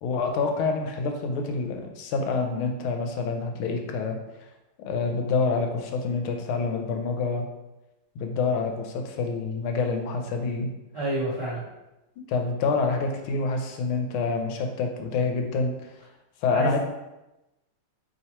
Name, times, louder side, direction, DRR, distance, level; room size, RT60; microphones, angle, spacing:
voice 1, 0.0-4.2 4.8-7.5 8.2-10.7 12.3-15.7 16.4-16.8, left 4 dB, 90° left, 4 dB, 1.4 m, -27 dB
voice 2, 10.9-11.6 16.5-16.8, right 1 dB, 40° right, -11 dB, 0.4 m, -29 dB
3.4 x 2.9 x 4.2 m, 0.98 s
omnidirectional pair, 2.3 m